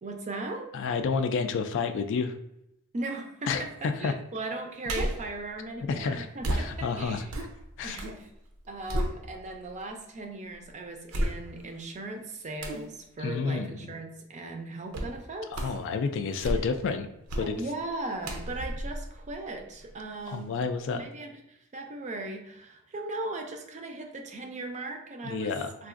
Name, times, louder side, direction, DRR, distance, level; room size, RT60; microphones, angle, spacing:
voice 1, 0.0-0.7 2.9-7.3 7.8-8.3 8.7-15.5 17.6-20.6 20.9-25.5 25.8-25.9, right 2 dB, 35° right, 4 dB, 0.4 m, -38 dB
voice 2, 0.7-2.4 3.5-4.1 5.9-6.3 6.5-7.2 7.8-8.0 13.2-13.9 15.5-17.1 17.4-17.6 20.3-21.0 25.2-25.7, left 5 dB, 60° left, 8 dB, 0.3 m, -30 dB
sound 1, 4.8-5.3 6.4-8.2 8.5-9.7 10.2-10.3 11.1-11.8 12.6-12.9 14.9-15.2 15.5-15.9 16.3-16.9 17.3-17.6 18.2-19.9 20.3-20.4, right 1 dB, 80° right, 0.6 m, -33 dB
3.8 x 2.5 x 2.4 m, 0.82 s
head